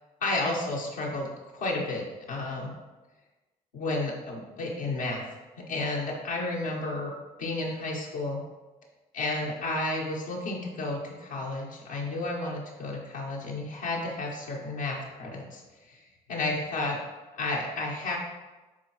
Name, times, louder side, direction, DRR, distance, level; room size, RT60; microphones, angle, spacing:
voice 1, 0.2-1.3 1.5-2.7 3.7-5.2 5.7-7.1 7.4-8.4 9.1-15.6 15.9-17.0 17.3-18.2, left 2 dB, 85° left, -6 dB, 1.3 m, -32 dB
12.5 x 4.5 x 3.1 m, 1.2 s
hypercardioid pair, 40°, 19 cm